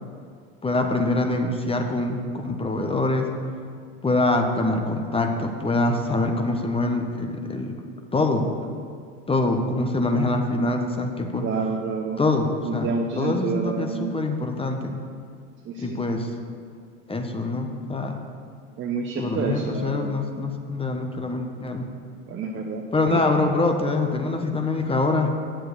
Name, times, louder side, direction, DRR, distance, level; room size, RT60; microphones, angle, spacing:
voice 1, 0.6-3.3 4.0-7.8 8.1-8.5 9.3-11.5 12.2-12.9 13.2-14.9 15.8-16.3 17.1-18.2 19.2-21.9 22.9-25.4, left 2 dB, 15° left, 4 dB, 1.2 m, -24 dB
voice 2, 11.4-12.2 12.6-14.1 15.6-16.0 18.8-20.1 22.3-23.3, right 5 dB, 30° right, 2 dB, 1.0 m, -29 dB
8.7 x 7.5 x 6.8 m, 2.1 s
hypercardioid pair, 85°, 38 cm